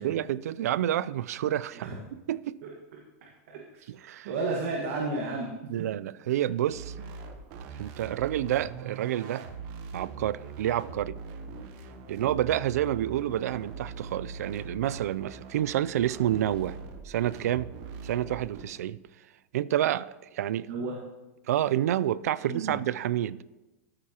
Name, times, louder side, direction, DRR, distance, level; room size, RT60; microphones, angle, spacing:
voice 1, 0.0-2.6 3.9-4.3 5.7-6.9 7.7-9.5 9.9-11.2 12.1-16.8 17.0-17.7 18.0-19.0 19.5-20.7 21.5-23.4, right 12 dB, 85° right, 0.4 m, -29 dB
voice 2, 3.5-3.8 4.2-5.5 20.7-21.0 22.4-22.9, right 3 dB, 60° right, 1.6 m, -32 dB
sound 1, 6.7-18.6, right 5 dB, 40° right, 0.9 m, -42 dB
14.0 x 8.7 x 2.9 m
supercardioid pair, 160°, 8 cm